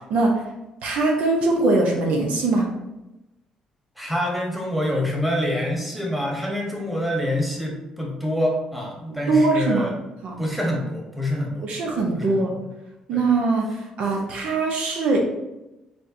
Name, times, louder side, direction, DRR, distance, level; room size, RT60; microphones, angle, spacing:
voice 1, 0.8-2.7 9.3-9.9 10.2-10.4 11.6-12.5 13.1-15.2, right 3 dB, 75° right, 0 dB, 0.9 m, -21 dB
voice 2, 4.0-9.9 10.4-12.6 13.1-13.3, left 1 dB, 5° right, -2 dB, 1.3 m, -26 dB
4.3 x 3.7 x 2.8 m, 0.96 s
cardioid pair, 90°, 2 cm